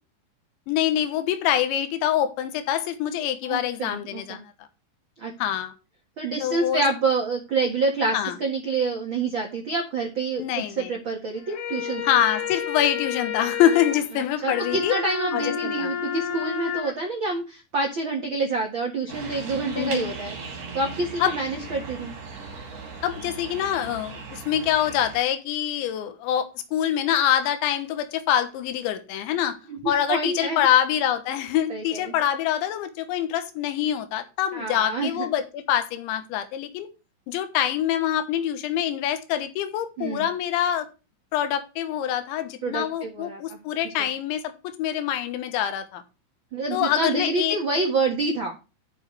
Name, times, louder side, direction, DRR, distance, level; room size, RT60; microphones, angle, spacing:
voice 1, 0.7-4.7 5.4-5.7 6.4-6.8 8.1-8.4 10.4-10.9 12.0-15.0 15.3-15.9 19.7-20.1 21.2-21.3 23.0-29.6 29.9-36.9 37.3-40.9 41.3-46.0 46.7-47.6, left 10 dB, 80° left, 9 dB, 3.5 m, -25 dB
voice 2, 3.4-4.4 5.2-5.3 6.2-12.0 14.4-20.3 20.7-22.1 29.7-30.7 31.7-32.0 34.5-35.3 40.0-40.3 42.6-43.6 43.8-44.1 46.5-48.5, right 3 dB, 80° right, 0 dB, 1.1 m, -27 dB
sound 1, 11.3-16.9, left 8 dB, 60° left, 2.5 m, -31 dB
sound 2, 19.1-25.2, right 4 dB, 40° right, 3.2 m, -38 dB
13.0 x 7.2 x 3.3 m, 0.30 s
omnidirectional pair, 5.3 m